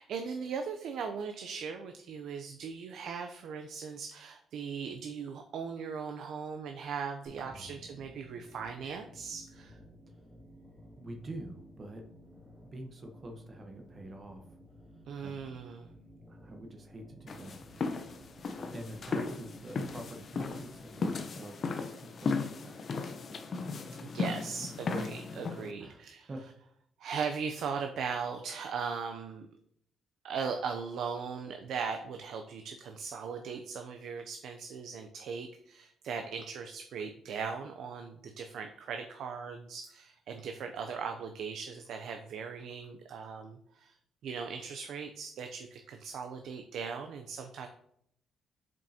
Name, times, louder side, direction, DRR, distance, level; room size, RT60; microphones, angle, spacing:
voice 1, 0.0-9.8 15.1-15.9 24.0-26.3 27.0-29.5 30.2-43.9 44.2-47.7, right 6 dB, 75° right, 5 dB, 0.5 m, -39 dB
sound 1, 7.2-20.8, equal, 5° left, 2.1 m, -55 dB
voice 2, 11.0-12.1 12.6-14.6 15.2-15.3 16.3-17.6 18.7-24.0 25.8-26.5, right 1 dB, 35° right, 3 dB, 0.9 m, -47 dB
sound 2, 17.3-25.7, left 4 dB, 50° left, 0.7 m, -36 dB
7.2 x 5.1 x 2.8 m, 0.72 s
cardioid pair, 90°, 0 cm